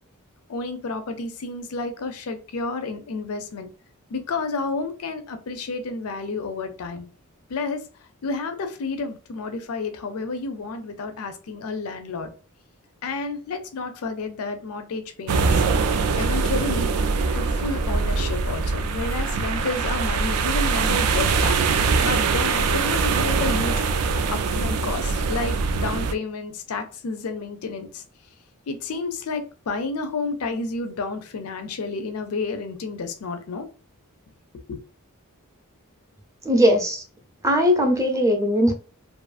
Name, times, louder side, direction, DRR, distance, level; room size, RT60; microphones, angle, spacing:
voice 1, 0.5-3.7 4.1-7.0 7.5-7.8 8.2-12.3 13.0-16.9 17.3-21.6 22.0-23.7 24.3-28.0 28.7-33.7 34.7-34.8, left 3 dB, 75° left, 0.4 m, -30 dB
sound 1, 15.3-26.1, right 4 dB, 85° right, 0.4 m, -23 dB
voice 2, 36.4-37.0 37.4-38.7, equal, 15° right, 0.5 m, -19 dB
2.6 x 2.4 x 2.3 m
head